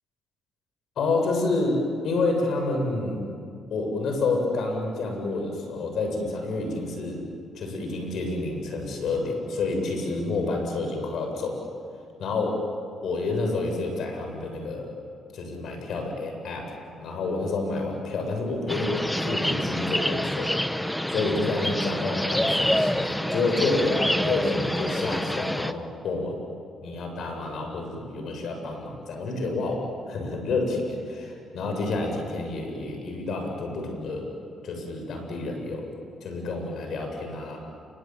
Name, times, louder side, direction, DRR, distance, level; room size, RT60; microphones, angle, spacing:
voice 1, 1.0-3.2 3.7-7.2 7.5-11.7 12.2-12.6 13.0-15.0 15.3-20.5 21.1-26.4 26.8-34.3 34.6-36.0 36.2-37.6, left 3 dB, 70° left, 3 dB, 7.4 m, -29 dB
sound 1, 18.7-25.7, left 1 dB, 5° left, 1.0 m, -27 dB
29.0 x 24.5 x 7.7 m, 2.3 s
cardioid pair, 90°, 0 cm